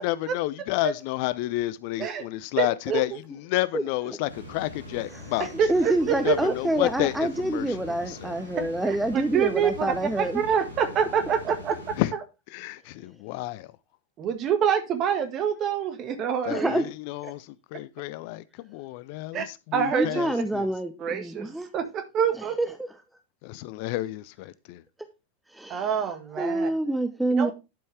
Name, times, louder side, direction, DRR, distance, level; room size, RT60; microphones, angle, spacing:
voice 1, 0.0-3.1 3.5-5.5 6.2-8.3 12.0-12.1 12.5-13.7 16.5-20.7 23.4-24.8, left 17 dB, 45° left, 0.4 m, -30 dB
voice 2, 2.6-3.2 5.4-6.5 8.8-12.2 14.2-16.7 19.3-19.5 19.7-20.2 21.0-22.6 25.7-26.7 27.4-27.5, right 8 dB, 35° right, 1.7 m, -26 dB
sound 1, 4.3-12.1, left 1 dB, 80° right, 6.1 m, -42 dB
voice 3, 5.1-10.4 16.5-16.9 19.9-21.7 22.3-22.7 25.6-27.5, right 1 dB, 5° right, 0.7 m, -27 dB
11.5 x 5.4 x 3.4 m
figure-of-eight pair, 90°, 0 cm